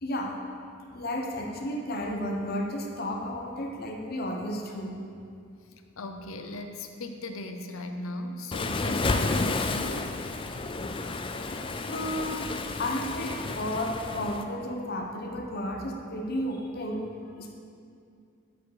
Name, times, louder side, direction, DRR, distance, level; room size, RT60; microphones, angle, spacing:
voice 1, 0.0-0.4 0.9-5.0 11.9-17.5, left 1 dB, 45° left, 2 dB, 0.8 m, -33 dB
voice 2, 5.7-10.1, left 2 dB, 75° left, 6 dB, 0.7 m, -38 dB
Waves surf, 8.5-14.4, left 3 dB, 25° left, 0.3 m, -31 dB
12.5 x 4.8 x 4.9 m, 2.4 s
head